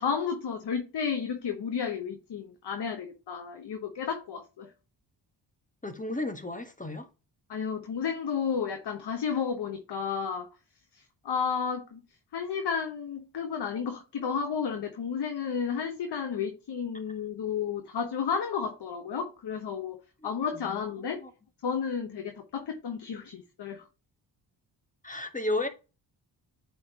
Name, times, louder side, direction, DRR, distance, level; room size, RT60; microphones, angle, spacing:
voice 1, 0.0-4.7 7.5-10.5 10.9-12.0 12.3-21.2 21.6-23.9, left 6 dB, 65° left, 1.1 m, -32 dB
voice 2, 5.8-7.1 20.6-20.9 21.2-21.3 25.0-25.7, left 2 dB, 15° left, 1.3 m, -33 dB
8.5 x 4.5 x 2.9 m
cardioid pair, 70°, 44 cm